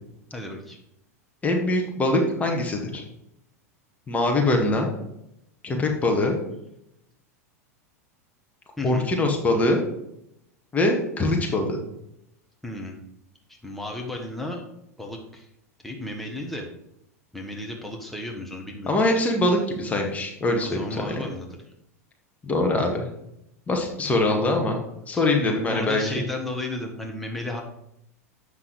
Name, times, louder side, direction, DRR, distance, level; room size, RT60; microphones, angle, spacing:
voice 1, 0.3-0.8 8.8-9.1 12.6-13.0 13.5-14.7 15.0-15.5 15.8-16.7 17.3-19.0 20.6-21.5 25.1-27.6, left 1 dB, ahead, 0 dB, 1.4 m, -34 dB
voice 2, 1.4-3.0 4.1-4.9 5.6-6.4 8.8-9.8 10.7-11.8 18.9-21.2 22.4-23.1 23.7-24.8 25.1-26.0, left 2 dB, 15° left, 2 dB, 1.7 m, -23 dB
8.0 x 5.9 x 4.7 m, 0.80 s
figure-of-eight pair, 90°, 8 cm